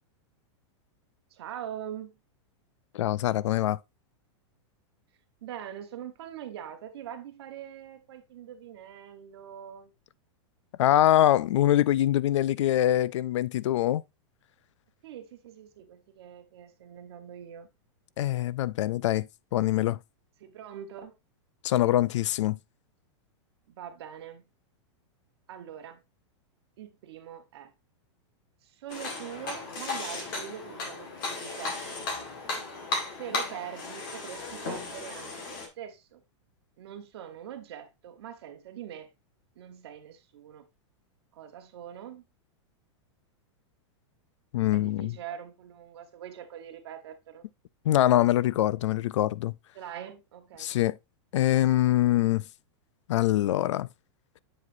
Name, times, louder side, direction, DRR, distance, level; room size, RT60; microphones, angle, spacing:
voice 1, 1.3-2.1 5.4-9.9 15.0-17.7 20.4-21.1 23.7-24.5 25.5-26.0 26.8-27.7 28.6-31.8 33.2-36.2 36.8-39.1 39.6-40.7 41.3-42.2 44.7-47.5 49.7-50.7, right 10 dB, 60° right, 1.2 m, -43 dB
voice 2, 2.9-3.8 10.8-14.0 18.2-19.3 19.5-20.0 21.6-22.6 44.5-45.2 47.9-49.5 50.6-51.0 51.3-52.4 53.1-53.9, left 13 dB, 85° left, 0.4 m, -24 dB
sound 1, 28.9-35.7, left 3 dB, 45° left, 1.8 m, -35 dB
7.9 x 4.9 x 2.6 m
supercardioid pair, 170°, 15 cm